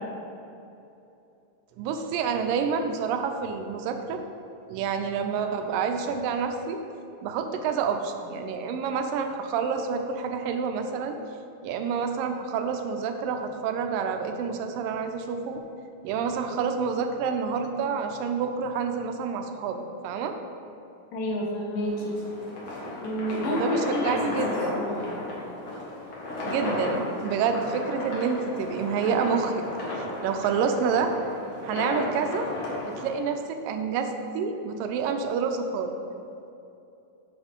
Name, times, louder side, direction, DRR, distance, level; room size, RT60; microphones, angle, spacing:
voice 1, 1.8-4.2 4.7-6.8 7.2-11.2 11.6-15.6 16.0-20.4 23.5-24.8 26.5-29.6 30.2-31.1 31.6-32.5 32.8-35.9, right 6 dB, 85° right, 6 dB, 2.3 m, -28 dB
voice 2, 21.1-22.2 23.0-25.2, left 1 dB, 75° left, -2 dB, 3.0 m, -30 dB
sound 1, 21.8-33.1, left 2 dB, 50° left, 2.2 m, -34 dB
9.7 x 6.9 x 3.6 m, 2.8 s
omnidirectional pair, 3.9 m